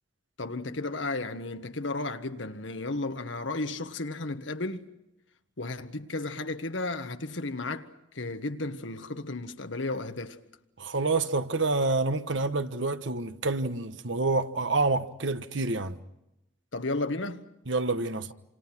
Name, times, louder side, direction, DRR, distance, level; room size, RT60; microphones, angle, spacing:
voice 1, 0.4-4.9 5.6-10.4 16.7-17.5, left 2 dB, 70° left, 1.5 m, -33 dB
voice 2, 10.8-16.0 17.7-18.3, right 3 dB, 70° right, 1.2 m, -28 dB
28.0 x 27.5 x 6.1 m
head